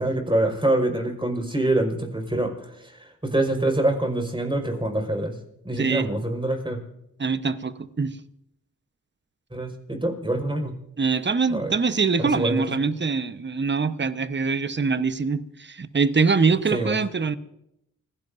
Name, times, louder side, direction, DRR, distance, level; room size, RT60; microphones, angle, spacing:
voice 1, 0.0-2.5 2.8-5.3 5.6-6.8 9.5-10.7 11.5-11.7 12.2-12.7 16.7-17.0, right 1 dB, 15° right, 3 dB, 5.0 m, -25 dB
voice 2, 5.8-6.1 7.2-8.1 11.0-17.4, right 4 dB, 35° right, 12 dB, 1.1 m, -24 dB
29.0 x 17.0 x 2.7 m, 0.83 s
supercardioid pair, 40°, 33 cm